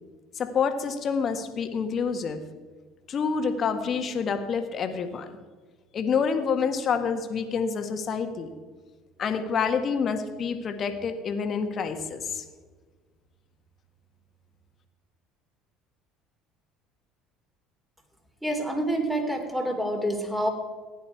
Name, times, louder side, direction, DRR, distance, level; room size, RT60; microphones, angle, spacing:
voice 1, 0.4-2.4 3.1-5.4 5.9-8.5 9.2-12.4, left 6 dB, 45° left, 7 dB, 1.7 m, -27 dB
voice 2, 18.4-20.5, right 1 dB, 5° right, 2 dB, 3.4 m, -27 dB
16.0 x 10.5 x 4.7 m, 1.4 s
hypercardioid pair, 70°, 0 cm